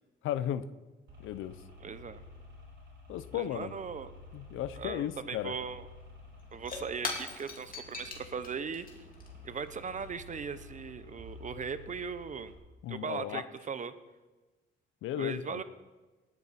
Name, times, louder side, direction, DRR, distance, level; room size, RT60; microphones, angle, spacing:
voice 1, 0.2-0.7 1.2-1.5 3.1-3.7 4.3-5.5 12.8-13.4 15.0-15.6, left 11 dB, 85° left, 14 dB, 0.6 m, -35 dB
sound 1, 1.1-12.5, left 3 dB, 70° right, 4.8 m, -52 dB
voice 2, 1.8-2.2 3.3-4.1 4.8-5.9 6.5-8.9 9.4-12.5 12.9-13.9 15.2-15.6, right 6 dB, 40° right, 13 dB, 0.9 m, -39 dB
Shatter / Crushing, 5.7-5.8 6.0-10.9, left 4 dB, 45° left, 2.7 m, -43 dB
18.5 x 9.7 x 4.3 m, 1.2 s
cardioid pair, 90°, 20 cm